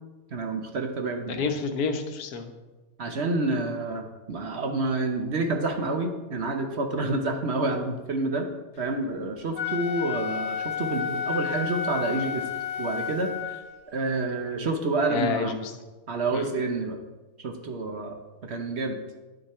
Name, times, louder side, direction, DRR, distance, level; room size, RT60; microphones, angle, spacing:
voice 1, 0.3-1.4 3.0-8.5 8.8-12.5 12.8-13.6 13.9-15.5 16.1-17.0 17.4-18.2 18.4-19.0, right 2 dB, 50° right, 4 dB, 1.0 m, -28 dB
voice 2, 1.3-2.5 15.1-15.7 16.3-16.5, left 5 dB, 85° left, 7 dB, 1.4 m, -29 dB
Wind instrument woodwind instrument, 9.4-13.8, left 7 dB, 50° left, 1.2 m, -31 dB
10.5 x 6.5 x 4.3 m, 1.2 s
omnidirectional pair, 1.6 m